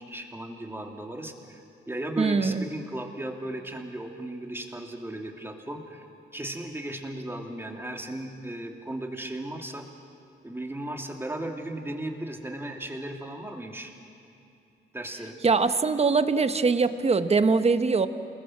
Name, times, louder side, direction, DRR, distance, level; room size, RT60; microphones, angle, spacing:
voice 1, 0.0-6.0 6.3-9.9 10.4-13.9 14.9-15.4, right 1 dB, 10° right, 2 dB, 2.9 m, -36 dB
voice 2, 2.2-2.6 15.4-18.1, right 4 dB, 35° right, 10 dB, 1.2 m, -22 dB
28.0 x 20.0 x 7.5 m, 2.7 s
cardioid pair, 80°, 19 cm